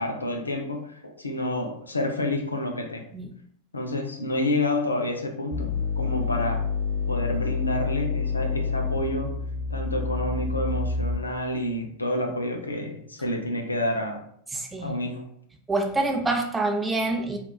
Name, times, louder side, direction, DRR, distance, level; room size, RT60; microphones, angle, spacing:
voice 1, 0.0-3.0 3.7-6.7 7.1-9.4 9.7-14.2 14.8-15.3, left 1 dB, 80° left, 3 dB, 0.4 m, -29 dB
sound 1, 5.5-11.5, left 4 dB, 70° right, 0.9 m, -28 dB
voice 2, 14.5-15.0 15.7-17.4, right 2 dB, 10° right, 2 dB, 0.4 m, -26 dB
3.6 x 2.2 x 2.3 m, 0.66 s
figure-of-eight pair, 90°, 0 cm